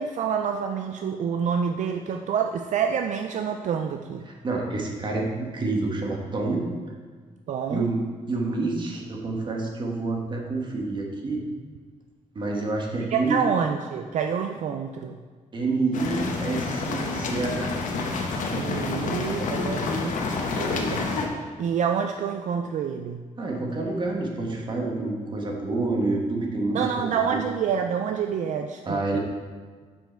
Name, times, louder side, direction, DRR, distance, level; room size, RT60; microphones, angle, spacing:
voice 1, 0.0-4.3 7.5-7.9 13.0-15.2 18.5-20.2 20.6-21.1 21.6-23.2 26.7-29.2, right 7 dB, 65° right, 5 dB, 0.4 m, -27 dB
voice 2, 4.3-6.6 7.7-8.0 8.3-11.4 12.3-13.4 15.5-17.7 23.4-26.8 27.2-27.5 28.9-29.2, right 3 dB, 35° right, 0 dB, 1.2 m, -28 dB
sound 1, 15.9-21.3, left 3 dB, 80° left, 0.9 m, -28 dB
7.4 x 5.7 x 4.4 m, 1.5 s
wide cardioid pair, 150°, 13 cm